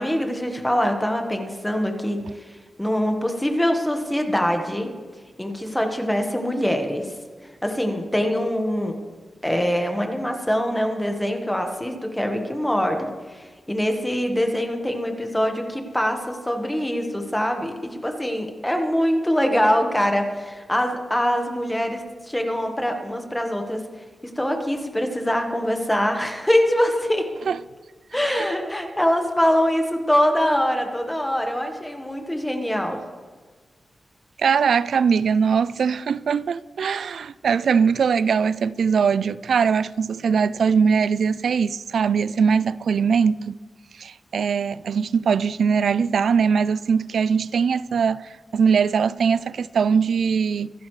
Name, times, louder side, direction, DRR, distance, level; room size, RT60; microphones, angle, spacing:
voice 1, 0.0-4.9 5.4-7.1 7.4-9.0 9.4-23.8 24.2-27.3 28.1-33.0, equal, 5° left, 1.3 m, -24 dB
voice 2, 34.4-43.6 44.0-50.7, right 6 dB, 90° right, 0.3 m, -21 dB
26.0 x 11.5 x 3.2 m
wide cardioid pair, 175°, 0 cm